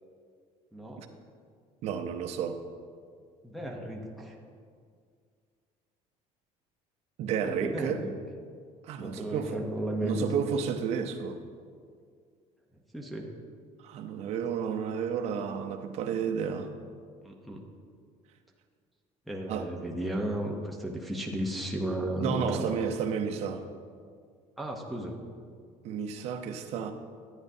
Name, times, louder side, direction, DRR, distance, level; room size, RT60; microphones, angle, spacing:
voice 1, 0.7-1.1 3.4-4.4 7.4-8.1 9.0-10.3 12.9-13.3 17.2-17.7 19.3-22.6 24.6-25.3, right 1 dB, ahead, -1 dB, 0.7 m, -34 dB
voice 2, 1.8-2.6 7.2-8.0 8.8-9.6 10.0-11.4 13.8-16.7 19.5-19.7 22.2-23.7 25.8-26.9, right 7 dB, 55° right, 6 dB, 0.7 m, -31 dB
11.0 x 9.5 x 2.7 m, 2.1 s
cardioid pair, 160°, 13 cm